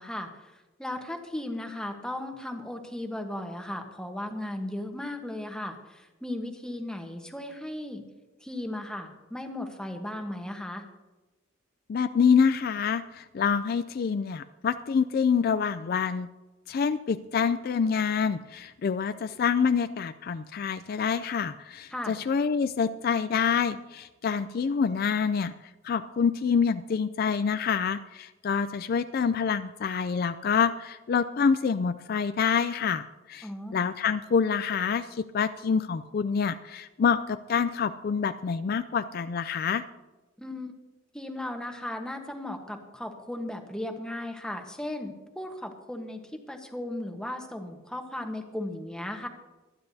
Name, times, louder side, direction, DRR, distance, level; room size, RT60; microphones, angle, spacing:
voice 1, 0.0-8.0 8.4-10.9 21.9-22.2 33.4-33.8 40.4-40.7 41.1-49.3, left 1 dB, 5° left, 4 dB, 1.1 m, -36 dB
voice 2, 11.9-16.3 16.7-25.5 25.8-39.8, left 6 dB, 45° left, 12 dB, 0.3 m, -26 dB
24.5 x 9.9 x 2.7 m, 1.1 s
head